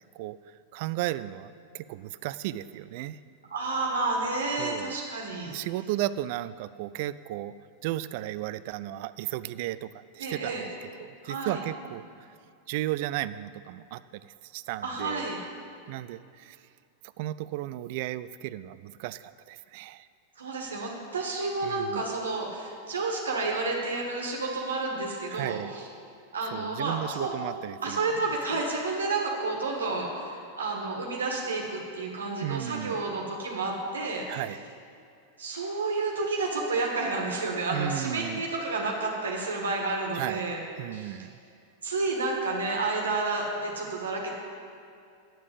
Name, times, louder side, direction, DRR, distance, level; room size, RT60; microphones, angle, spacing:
voice 1, 0.7-3.2 4.6-4.9 5.5-7.5 7.8-10.7 11.0-12.0 12.7-15.3 15.9-16.6 17.2-20.1 21.6-22.0 25.3-25.7 26.5-28.0 28.5-28.6 32.4-33.0 34.3-34.6 37.7-38.4 40.1-40.4 40.8-41.3, right 14 dB, 50° right, 16 dB, 0.3 m, -34 dB
voice 2, 3.5-5.5 10.2-10.6 11.2-11.6 14.8-15.4 20.4-25.9 26.3-27.3 27.8-34.3 35.4-40.6 40.9-41.2 41.8-44.3, right 3 dB, 70° right, 0 dB, 1.5 m, -30 dB
9.0 x 7.2 x 8.2 m, 2.4 s
figure-of-eight pair, 90°, 0 cm